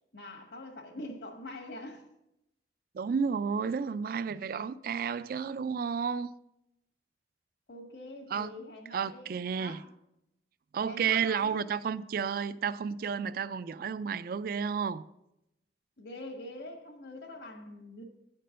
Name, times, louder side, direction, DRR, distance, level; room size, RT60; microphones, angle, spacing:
voice 1, 0.1-2.0 7.7-9.8 10.9-11.7 16.0-18.0, left 1 dB, 70° left, 1.4 m, -44 dB
voice 2, 2.9-6.3 8.3-8.5 8.9-9.8 10.7-15.0, right 6 dB, 55° right, 0.3 m, -31 dB
9.1 x 4.5 x 6.3 m
head